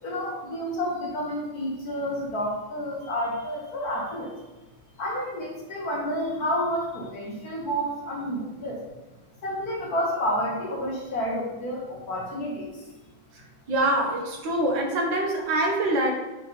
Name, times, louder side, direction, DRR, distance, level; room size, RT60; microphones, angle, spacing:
voice 1, 0.0-4.3 5.0-8.9 9.4-12.9, equal, 50° left, -1 dB, 1.5 m, -30 dB
voice 2, 13.7-16.1, right 1 dB, 65° right, 0 dB, 1.8 m, -24 dB
9.0 x 4.4 x 3.9 m, 1.1 s
omnidirectional pair, 2.3 m